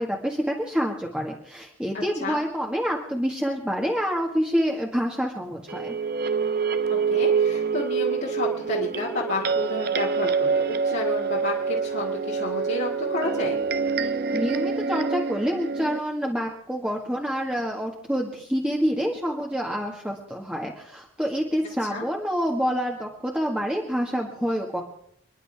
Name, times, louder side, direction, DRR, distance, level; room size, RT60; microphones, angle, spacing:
voice 1, 0.0-5.9 14.0-24.8, equal, 5° right, -1 dB, 1.7 m, -27 dB
voice 2, 1.9-2.4 6.9-13.6 21.8-22.0, left 2 dB, 55° left, -5 dB, 2.5 m, -31 dB
sound 1, 5.7-16.0, right 5 dB, 50° right, 0.9 m, -26 dB
29.5 x 11.0 x 3.5 m, 0.69 s
head